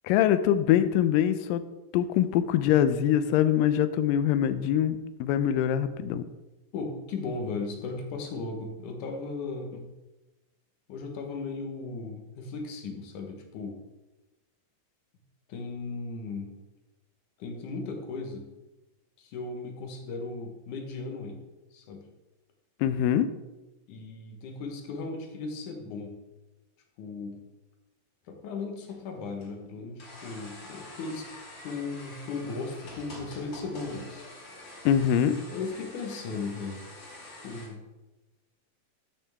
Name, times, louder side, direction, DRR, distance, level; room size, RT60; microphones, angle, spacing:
voice 1, 0.0-1.6 1.9-6.2 22.8-23.3 34.9-35.4, left 10 dB, 85° left, 12 dB, 2.2 m, -24 dB
voice 2, 6.7-9.9 10.9-13.8 15.5-16.6 17.4-18.5 19.2-21.4 21.7-22.1 23.9-26.2 27.0-27.4 28.3-31.3 31.6-34.2 35.5-36.8 37.4-37.8, left 3 dB, 65° left, 2 dB, 2.6 m, -36 dB
sound 1, 28.9-37.7, left 2 dB, 35° left, 2.7 m, -46 dB
13.0 x 6.0 x 3.5 m, 1.1 s
omnidirectional pair, 4.0 m